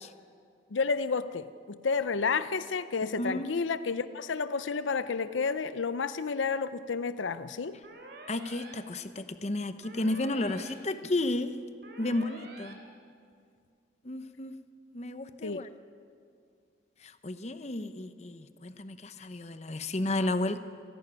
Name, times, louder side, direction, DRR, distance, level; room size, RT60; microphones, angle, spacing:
voice 1, 0.7-7.8 15.4-15.6, left 5 dB, 85° left, 13 dB, 0.6 m, -31 dB
voice 2, 3.2-3.5 8.3-11.5 12.0-12.8 14.0-14.5 14.9-15.7 17.0-20.6, left 2 dB, 35° left, 11 dB, 0.8 m, -32 dB
sound 1, 7.8-8.7 9.8-10.7 11.8-12.7, right 2 dB, 60° right, 3.3 m, -48 dB
28.0 x 12.0 x 9.8 m, 2.3 s
head